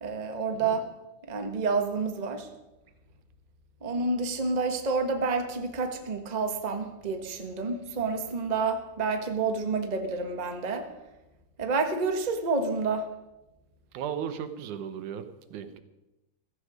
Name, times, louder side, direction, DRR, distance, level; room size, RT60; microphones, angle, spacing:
voice 1, 0.0-0.9 1.3-2.5 3.8-10.9 11.6-13.1, right 4 dB, 45° right, 5 dB, 0.5 m, -29 dB
voice 2, 13.9-15.8, right 8 dB, 80° right, 10 dB, 2.6 m, -36 dB
16.0 x 15.0 x 5.0 m, 0.98 s
omnidirectional pair, 3.5 m